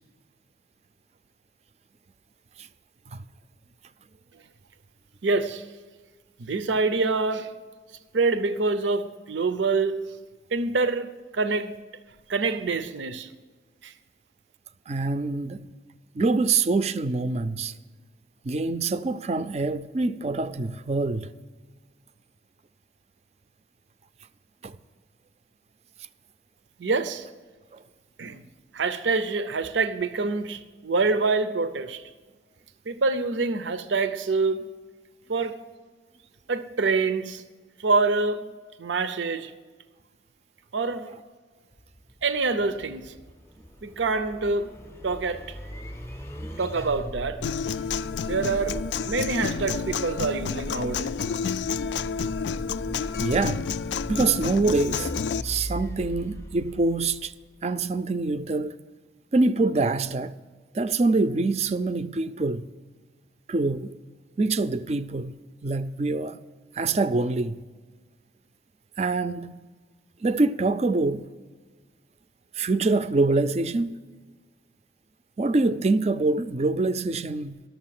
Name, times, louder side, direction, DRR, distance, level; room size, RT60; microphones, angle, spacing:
voice 1, 5.2-5.6 6.4-7.5 8.1-10.2 10.5-11.7 12.3-13.3 13.8-13.9 26.8-27.3 28.2-28.4 28.7-32.0 32.9-34.7 35.3-35.6 36.5-37.4 37.8-38.5 38.8-39.5 40.7-41.1 42.2-43.1 43.8-45.5 46.6-47.4 48.2-51.1, right 3 dB, 90° right, 0.6 m, -26 dB
voice 2, 14.9-15.6 16.1-17.7 18.4-21.3 24.6-24.8 27.7-27.8 46.4-46.6 53.2-53.7 54.1-55.1 55.4-57.3 57.6-58.7 59.3-60.3 60.7-62.6 63.5-64.0 64.4-66.4 66.7-67.6 69.0-69.6 70.2-71.3 72.5-74.0 75.4-77.6, right 3 dB, 35° right, 0.4 m, -25 dB
sound 1, 41.7-57.7, equal, 15° left, 0.6 m, -39 dB
Human voice / Acoustic guitar, 47.4-55.4, left 6 dB, 75° left, 0.3 m, -30 dB
12.5 x 7.1 x 7.5 m
head